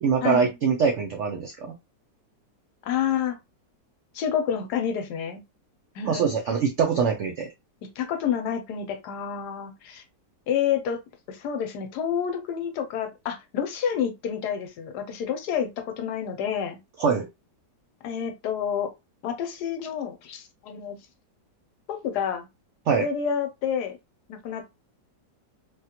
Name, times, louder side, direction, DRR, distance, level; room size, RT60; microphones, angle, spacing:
voice 1, 0.0-1.7 6.0-7.5 17.0-17.3 22.9-23.1, right 6 dB, 80° right, 0.6 m, -23 dB
voice 2, 2.8-3.4 4.1-5.4 5.9-6.3 8.0-10.0 10.5-11.0 11.3-16.8 18.0-18.9 19.2-21.0 21.9-22.5 22.9-24.0 24.3-24.6, left 8 dB, 75° left, 1.2 m, -29 dB
3.4 x 2.2 x 2.8 m
omnidirectional pair, 1.9 m